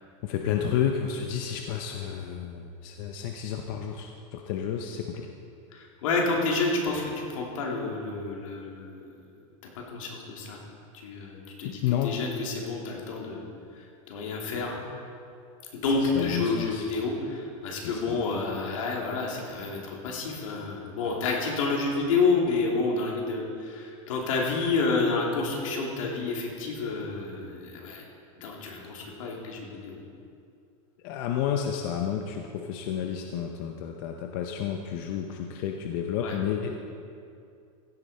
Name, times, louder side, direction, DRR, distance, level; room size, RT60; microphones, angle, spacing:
voice 1, 0.2-5.3 11.6-12.1 16.0-16.9 17.8-18.2 31.0-36.8, left 8 dB, 40° left, 4 dB, 0.6 m, -31 dB
voice 2, 5.7-9.0 9.7-10.6 11.0-13.4 13.8-14.8 15.7-28.0 28.4-30.0 36.2-36.3, left 3 dB, 75° left, -1 dB, 2.7 m, -29 dB
15.5 x 8.6 x 4.2 m, 2.5 s
supercardioid pair, 175°, 17 cm